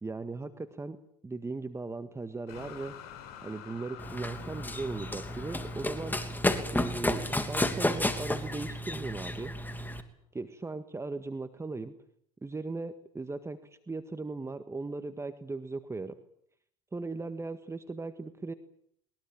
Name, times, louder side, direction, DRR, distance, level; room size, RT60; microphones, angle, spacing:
voice 1, 0.0-1.0 1.2-2.9 3.4-6.1 6.7-9.5 10.3-11.9 12.4-13.6 13.9-16.2 16.9-18.5, right 3 dB, 15° right, 10 dB, 1.7 m, -38 dB
sound 1, 2.5-8.5, left 9 dB, 60° left, 7.3 m, -49 dB
Run, 4.0-10.0, left 1 dB, 10° left, 3.1 m, -32 dB
22.0 x 21.5 x 9.1 m, 0.67 s
hypercardioid pair, 80°, 19 cm